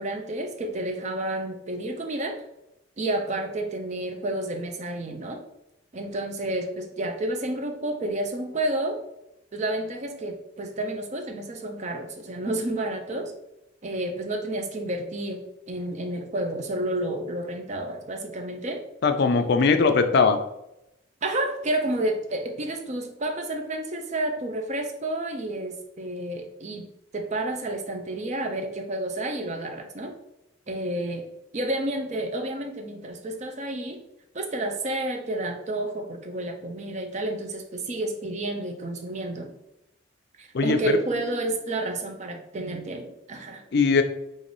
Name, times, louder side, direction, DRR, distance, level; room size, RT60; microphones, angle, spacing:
voice 1, 0.0-2.4 3.0-5.4 5.9-9.0 9.5-13.3 13.8-15.4 15.7-18.8 21.2-26.9 27.1-30.1 30.7-31.2 31.5-34.0 34.3-39.5 40.4-43.6, right 1 dB, 35° right, 4 dB, 0.5 m, -30 dB
voice 2, 19.0-20.4 40.5-41.0 43.7-44.0, left 4 dB, 55° left, 8 dB, 0.4 m, -20 dB
3.2 x 2.6 x 3.9 m, 0.86 s
head